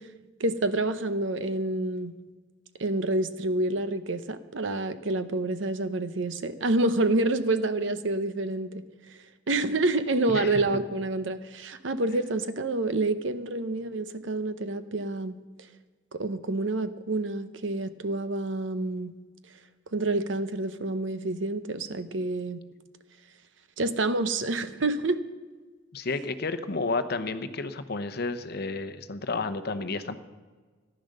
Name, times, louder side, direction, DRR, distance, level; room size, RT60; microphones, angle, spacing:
voice 1, 0.4-2.1 2.8-8.8 9.5-15.3 16.1-19.1 19.9-22.6 23.8-25.2, right 2 dB, 70° right, 11 dB, 0.8 m, -28 dB
voice 2, 10.3-10.6 25.9-30.2, left 3 dB, 55° left, 10 dB, 0.8 m, -31 dB
14.0 x 10.0 x 6.5 m, 1.4 s
head